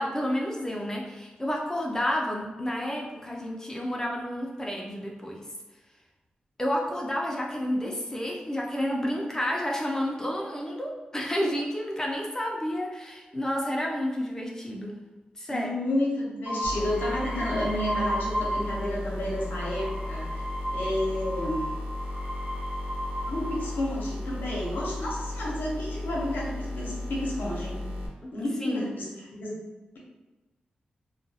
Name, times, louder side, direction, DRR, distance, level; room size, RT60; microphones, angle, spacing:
voice 1, 0.0-5.4 6.6-14.9 15.4-15.7 28.2-28.3 28.6-28.9, equal, 20° left, -1 dB, 0.5 m, -30 dB
voice 2, 15.5-20.4 20.7-21.7 23.3-27.9 28.3-29.5, left 1 dB, 85° left, -4 dB, 0.7 m, -31 dB
sound 1, 16.5-19.0 19.3-23.9 24.7-25.2, equal, 40° right, 0.6 m, -34 dB
sound 2, 16.6-28.1, left 2 dB, 85° right, 0.6 m, -35 dB
2.3 x 2.3 x 2.7 m, 1.2 s
cardioid pair, 60°, 3 cm